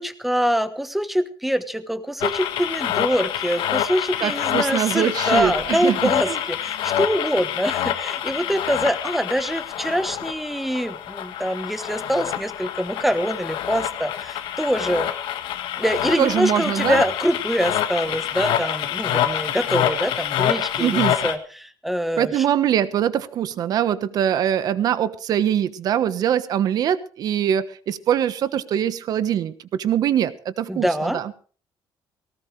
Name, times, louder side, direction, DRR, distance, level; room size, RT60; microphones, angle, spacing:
voice 1, 0.0-15.1 15.8-22.5 30.7-31.2, equal, ahead, 11 dB, 1.1 m, -24 dB
sound 1, 2.2-21.4, left 11 dB, 80° left, 1.8 m, -26 dB
voice 2, 4.2-6.4 16.2-17.0 20.8-21.2 22.2-31.3, right 10 dB, 50° right, 14 dB, 1.2 m, -23 dB
18.5 x 18.5 x 3.3 m, 0.39 s
cardioid pair, 165°, 8 cm